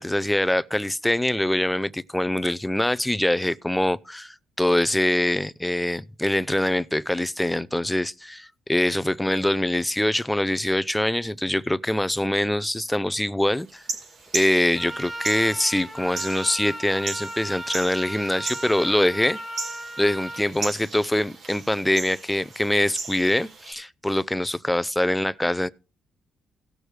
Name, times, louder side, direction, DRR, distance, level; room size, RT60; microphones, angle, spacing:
voice 1, 0.0-13.8 14.3-19.4 20.0-25.7, left 1 dB, 5° left, 0.5 m, -24 dB
sound 1, 13.7-23.7, right 3 dB, 60° right, 3.3 m, -37 dB
Trumpet, 14.7-20.4, right 1 dB, 10° right, 2.5 m, -36 dB
17.5 x 6.2 x 3.3 m
cardioid pair, 90°, 0 cm